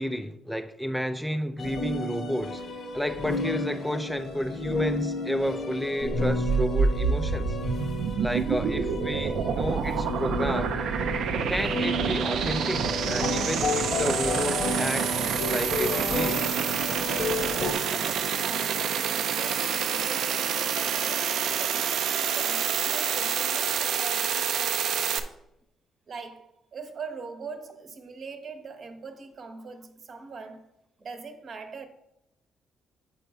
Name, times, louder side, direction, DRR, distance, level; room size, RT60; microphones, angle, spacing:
voice 1, 0.0-2.6 2.9-7.6 8.2-10.8 11.5-16.6, equal, ahead, 0.4 m, -31 dB
sound 1, 1.6-17.7, left 2 dB, 55° left, 0.9 m, -32 dB
sound 2, 6.0-25.2, right 7 dB, 75° right, 0.5 m, -28 dB
voice 2, 17.5-18.9 19.3-25.3 26.1-30.6 31.0-31.9, right 4 dB, 50° right, 0.9 m, -42 dB
7.7 x 4.1 x 4.8 m
cardioid pair, 90°, 0 cm